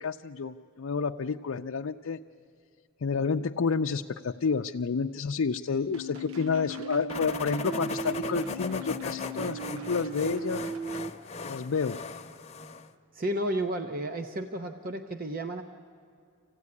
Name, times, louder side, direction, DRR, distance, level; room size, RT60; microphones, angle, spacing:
voice 1, 0.0-2.2 3.0-10.6 11.4-12.0, left 5 dB, 80° left, 3 dB, 0.5 m, -30 dB
sound 1, 5.9-11.1, right 3 dB, 80° right, 0.8 m, -37 dB
sound 2, 7.1-12.9, left 3 dB, 30° left, 0.9 m, -38 dB
voice 2, 13.1-15.6, right 1 dB, 40° right, 7 dB, 0.8 m, -32 dB
26.0 x 16.0 x 9.7 m, 2.4 s
head